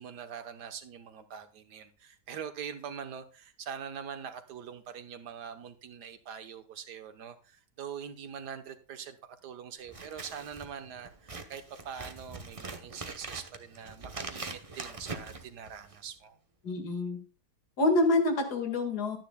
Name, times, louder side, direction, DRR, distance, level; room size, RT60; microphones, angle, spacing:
voice 1, 0.0-16.4, right 7 dB, 80° right, 1.6 m, -43 dB
Scissors, 9.8-16.1, right 3 dB, 25° right, 0.8 m, -43 dB
voice 2, 16.6-17.2 17.8-19.2, left 2 dB, 75° left, 2.4 m, -27 dB
12.0 x 10.0 x 2.3 m
omnidirectional pair, 1.7 m